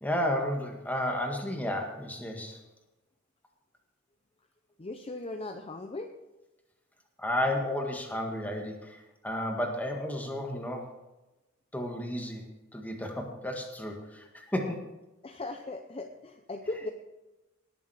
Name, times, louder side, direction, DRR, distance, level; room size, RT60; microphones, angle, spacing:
voice 1, 0.0-2.6 7.2-10.9 11.7-12.4 12.7-14.9, left 1 dB, 10° left, 2 dB, 1.8 m, -32 dB
voice 2, 4.8-6.1 15.2-16.9, left 2 dB, 30° left, 5 dB, 0.7 m, -38 dB
19.5 x 7.1 x 4.9 m, 1.0 s
head